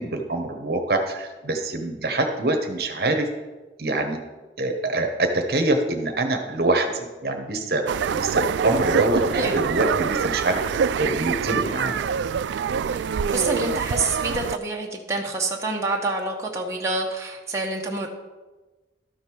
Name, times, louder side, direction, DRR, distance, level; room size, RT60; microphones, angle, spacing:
voice 1, 0.0-3.3 3.8-4.2 4.6-10.6 11.0-12.0, right 2 dB, 55° right, 5 dB, 1.1 m, -25 dB
sound 1, 7.9-14.6, right 7 dB, 85° right, 0.3 m, -25 dB
voice 2, 12.9-18.1, right 2 dB, 15° right, -1 dB, 1.1 m, -27 dB
12.5 x 5.3 x 6.1 m, 1.2 s
head